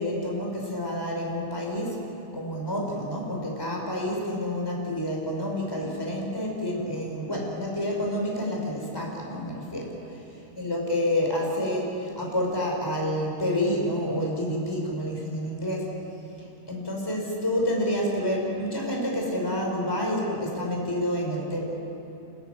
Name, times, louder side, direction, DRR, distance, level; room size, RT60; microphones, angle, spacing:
voice 1, 0.0-2.0 2.3-9.9 10.6-16.0 16.4-21.6, left 1 dB, 5° left, -1 dB, 5.0 m, -28 dB
29.0 x 15.0 x 9.7 m, 2.9 s
omnidirectional pair, 4.9 m